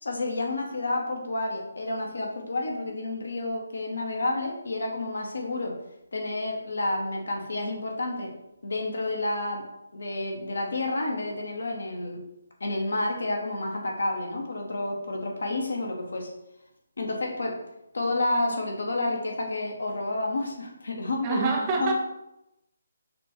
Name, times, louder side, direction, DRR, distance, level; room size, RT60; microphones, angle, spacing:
voice 1, 0.0-5.8 6.1-8.3 8.6-9.7 9.9-12.2 12.6-16.3 17.0-17.6 17.9-21.4 21.8-21.9, left 2 dB, 60° left, 1 dB, 1.0 m, -30 dB
voice 2, 21.2-21.9, right 4 dB, 25° right, 2 dB, 0.6 m, -25 dB
5.9 x 2.6 x 3.5 m, 0.87 s
figure-of-eight pair, 145°, 0 cm